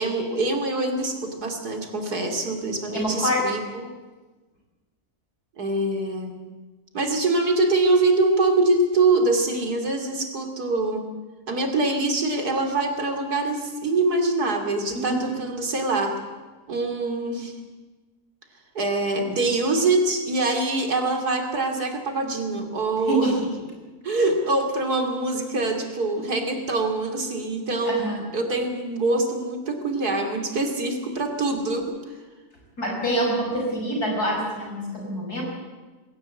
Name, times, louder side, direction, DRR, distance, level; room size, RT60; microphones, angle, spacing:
voice 1, 0.0-3.9 5.6-6.4 6.9-11.0 11.5-16.2 16.7-17.5 18.7-23.3 24.0-31.9, right 2 dB, 90° right, 4 dB, 3.4 m, -24 dB
voice 2, 2.9-3.5 15.1-15.2 23.1-23.4 27.8-28.2 32.8-35.4, right 1 dB, 80° left, 0 dB, 6.3 m, -25 dB
20.5 x 17.0 x 8.3 m, 1.3 s
omnidirectional pair, 1.6 m